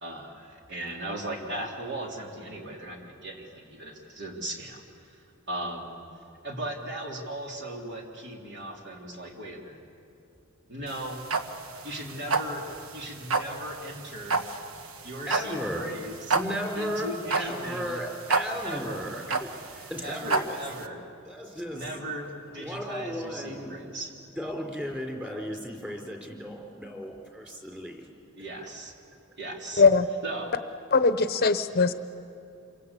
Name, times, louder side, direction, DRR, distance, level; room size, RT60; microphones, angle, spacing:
voice 1, 0.0-6.0 6.4-9.8 10.7-11.2 11.8-14.4 15.0-16.3 16.7-18.0 18.6-19.1 20.0-21.1 21.7-24.1 28.4-28.9 29.4-29.8 30.2-30.6, right 1 dB, 55° right, 1 dB, 3.4 m, -38 dB
sound 1, 10.9-20.8, right 4 dB, 80° right, 1.3 m, -30 dB
voice 2, 15.3-15.9 16.3-20.6 21.3-22.1 22.6-23.7 24.4-28.1, equal, 5° right, 1 dB, 3.8 m, -35 dB
voice 3, 29.8-30.1 30.9-31.9, left 4 dB, 45° left, 11 dB, 0.9 m, -20 dB
27.5 x 24.0 x 8.3 m, 2.7 s
head